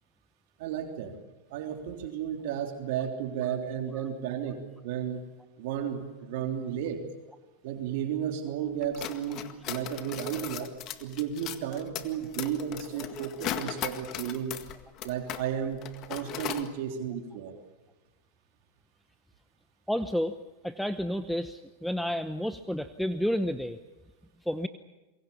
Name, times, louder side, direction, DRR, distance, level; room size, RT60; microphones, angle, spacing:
voice 1, 0.6-1.1 1.5-5.3 5.6-7.0 7.6-10.7 11.0-14.6 15.0-15.8 16.1-17.6, right 9 dB, 65° right, 4 dB, 3.3 m, -33 dB
sound 1, 8.8-15.5 15.7-16.7, left 11 dB, 45° left, 1.8 m, -37 dB
voice 2, 19.9-20.4 20.6-23.8 24.4-24.7, equal, ahead, 10 dB, 0.9 m, -30 dB
27.5 x 23.0 x 7.1 m, 1.1 s
hypercardioid pair, 110°, 0 cm